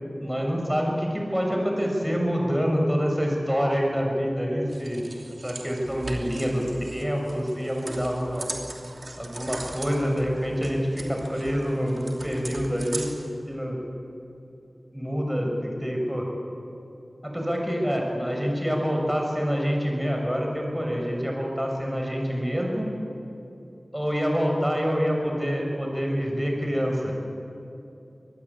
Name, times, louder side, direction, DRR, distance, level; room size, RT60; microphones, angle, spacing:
voice 1, 0.2-5.0 5.4-6.6 6.9-8.5 9.2-13.1 13.5-13.8 14.9-16.3 17.2-22.9 23.9-27.1, equal, 5° right, 0 dB, 6.9 m, -26 dB
sound 1, 4.7-13.3, right 2 dB, 60° right, 3.1 m, -39 dB
24.5 x 19.5 x 8.5 m, 2.8 s
wide cardioid pair, 55°, 0 cm